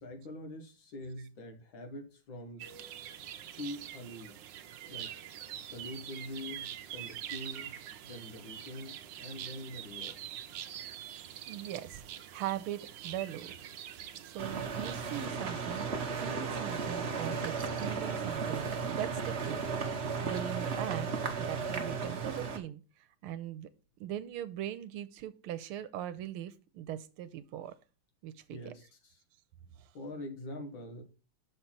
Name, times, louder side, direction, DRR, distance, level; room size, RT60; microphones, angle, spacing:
voice 1, 0.0-2.6 3.5-4.3 4.9-5.1 5.7-7.7 8.0-10.1 28.5-29.2 29.9-31.0, left 1 dB, 65° left, 2.1 m, -44 dB
sound 1, 2.6-15.3, right 10 dB, 70° right, 1.3 m, -45 dB
voice 2, 11.5-12.1 12.3-13.5 14.2-17.5 17.8-19.6 20.2-21.1 21.4-22.8 23.2-23.7 24.0-27.7 28.2-28.7, right 11 dB, 85° right, 1.5 m, -40 dB
sound 2, 14.4-22.6, right 5 dB, 45° right, 0.9 m, -35 dB
6.5 x 4.5 x 5.8 m
omnidirectional pair, 2.3 m